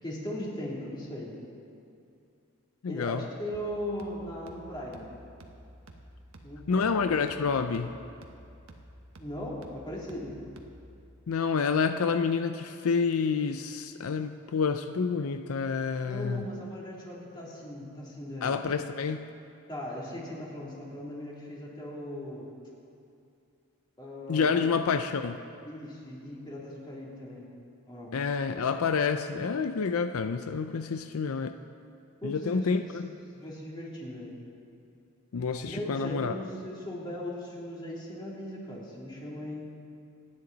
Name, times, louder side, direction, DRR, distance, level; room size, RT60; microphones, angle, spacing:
voice 1, 0.0-1.4 2.9-5.1 6.4-7.0 9.2-10.4 16.0-18.5 19.7-22.5 24.0-24.6 25.6-27.5 27.9-28.1 32.2-34.3 35.6-39.6, left 1 dB, 20° left, -5 dB, 2.8 m, -38 dB
voice 2, 2.8-3.2 6.7-7.9 11.3-16.4 18.4-19.3 24.3-25.4 28.1-31.5 32.2-33.1 35.3-36.3, left 5 dB, 80° left, 8 dB, 0.5 m, -28 dB
sound 1, 3.5-11.0, right 1 dB, 75° right, 1.2 m, -51 dB
27.0 x 9.6 x 4.0 m, 2.5 s
head